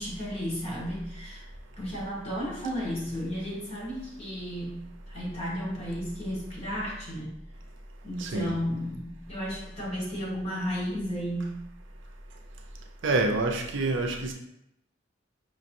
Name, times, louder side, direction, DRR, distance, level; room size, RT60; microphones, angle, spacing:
voice 1, 0.0-1.4 1.8-4.8 5.1-7.4 8.0-11.6, equal, 35° left, -5 dB, 1.4 m, -33 dB
voice 2, 8.2-8.5 13.0-14.3, right 2 dB, 75° right, 2 dB, 0.6 m, -27 dB
5.1 x 2.9 x 2.6 m, 0.80 s
head